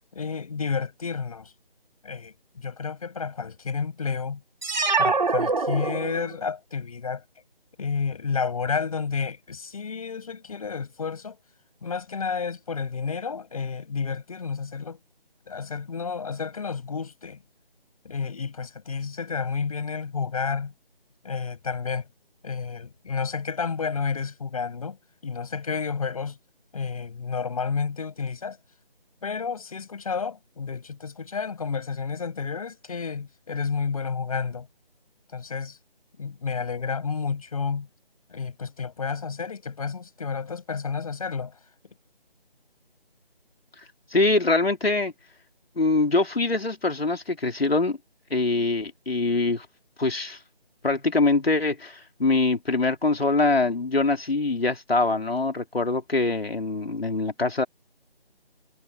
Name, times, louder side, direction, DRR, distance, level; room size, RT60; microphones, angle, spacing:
voice 1, 0.1-1.5 2.0-4.4 5.0-7.2 7.8-11.4 11.8-15.0 15.5-17.4 18.0-20.7 21.2-22.1 22.4-25.0 25.2-26.4 26.7-28.6 29.2-34.7 35.3-35.8 36.2-37.9 38.3-41.5, left 5 dB, 35° left, 7.9 m, -31 dB
sound 1, 4.6-6.5, right 4 dB, 50° right, 3.6 m, -24 dB
voice 2, 44.1-45.1 45.8-48.0 48.3-49.7 50.0-50.4 50.8-57.6, left 3 dB, 75° left, 3.8 m, -23 dB
figure-of-eight pair, 165°, 30 cm